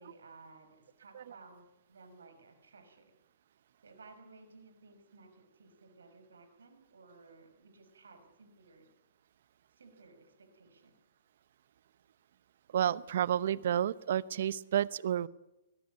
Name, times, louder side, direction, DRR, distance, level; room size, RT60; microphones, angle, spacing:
voice 1, 0.0-3.1 3.8-8.9 9.8-11.0, right 3 dB, 80° right, 7 dB, 5.8 m, -57 dB
voice 2, 12.7-15.3, right 10 dB, 60° right, 19 dB, 0.9 m, -30 dB
22.5 x 18.5 x 9.4 m, 0.93 s
hypercardioid pair, 125°, 0 cm